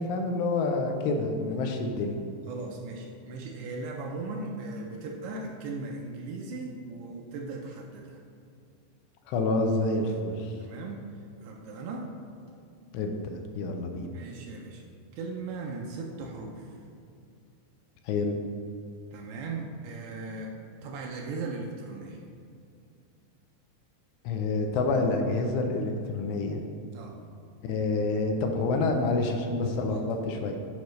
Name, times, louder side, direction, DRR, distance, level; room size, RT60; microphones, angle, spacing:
voice 1, 0.0-2.2 9.3-10.5 12.9-13.1 13.6-14.1 18.1-18.4 24.3-26.6 27.6-30.6, left 3 dB, 85° left, 4 dB, 2.7 m, -28 dB
voice 2, 2.5-8.2 10.6-11.0 11.4-12.1 14.1-14.8 15.2-16.8 19.1-20.6 20.8-22.3 26.9-27.2 29.9-30.1, right 3 dB, 80° right, 0 dB, 2.5 m, -38 dB
11.5 x 5.1 x 3.1 m, 2.4 s
omnidirectional pair, 5.0 m